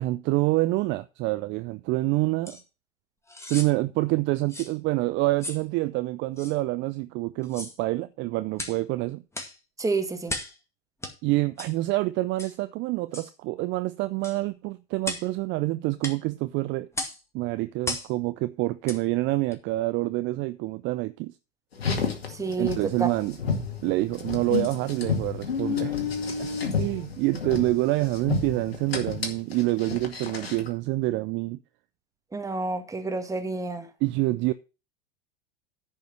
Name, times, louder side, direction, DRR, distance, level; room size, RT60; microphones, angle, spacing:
voice 1, 0.0-2.6 3.5-9.2 11.2-16.9 17.3-21.3 22.6-23.4 23.8-25.9 26.4-26.5 26.8-31.6 34.0-34.5, right 19 dB, 40° right, 0.5 m, -27 dB
sound 1, 2.5-2.6 3.3-3.7 4.5-4.7 5.4-5.6 6.4-6.6 7.4-7.8 8.6-8.8 9.3-9.6 10.3-10.6 11.0-11.1 11.6-11.8 12.4-12.6 13.1-13.3 14.2-14.4 15.0-15.3 16.0-16.2 16.9-17.2 17.8-18.1 18.8-19.0 19.5-19.6, left 2 dB, 10° left, 2.1 m, -35 dB
voice 2, 9.8-10.4 22.3-23.1 32.3-33.9, right 3 dB, 10° right, 1.6 m, -29 dB
Car, 21.7-30.7, left 6 dB, 85° left, 2.2 m, -31 dB
10.5 x 5.5 x 6.4 m
hypercardioid pair, 90°, 30 cm